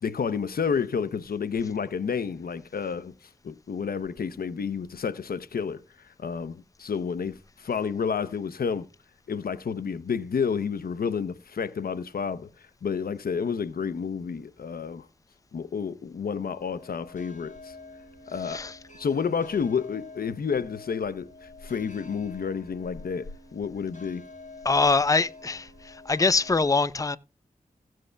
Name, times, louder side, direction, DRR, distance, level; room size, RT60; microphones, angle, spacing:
voice 1, 0.0-3.1 3.4-5.8 6.2-8.9 9.3-12.5 12.8-15.1 15.5-17.7 18.3-18.7 19.0-24.2, left 6 dB, 80° left, 0.7 m, -30 dB
sound 1, 16.6-26.6, left 2 dB, 55° left, 5.5 m, -47 dB
voice 2, 18.4-18.8 24.6-27.2, left 3 dB, 20° left, 0.5 m, -24 dB
16.5 x 7.6 x 2.2 m
cardioid pair, 50°, 15 cm